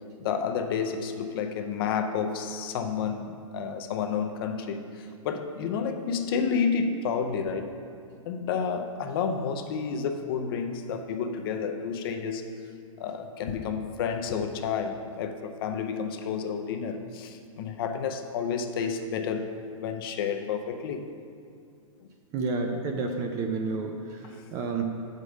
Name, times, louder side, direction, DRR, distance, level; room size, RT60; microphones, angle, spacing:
voice 1, 0.2-7.7 8.2-12.5 13.0-21.1 24.2-24.3, left 6 dB, 40° left, 6 dB, 0.5 m, -30 dB
voice 2, 22.3-24.8, right 4 dB, 20° right, 4 dB, 0.3 m, -30 dB
6.5 x 5.1 x 6.3 m, 2.4 s
hypercardioid pair, 155°, 18 cm